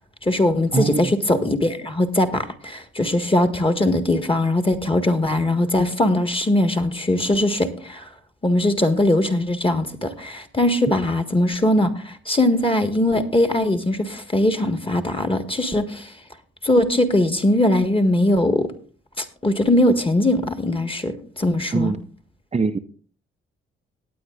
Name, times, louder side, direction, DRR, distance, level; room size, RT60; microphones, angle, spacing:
voice 1, 0.2-8.1 8.4-16.1 16.6-18.7 19.2-21.9, left 1 dB, 20° left, 8 dB, 1.7 m, -20 dB
voice 2, 0.7-1.1 21.7-22.0 22.5-22.8, right 4 dB, 20° right, 6 dB, 0.7 m, -21 dB
18.5 x 9.3 x 2.5 m, 0.44 s
hypercardioid pair, 40°, 29 cm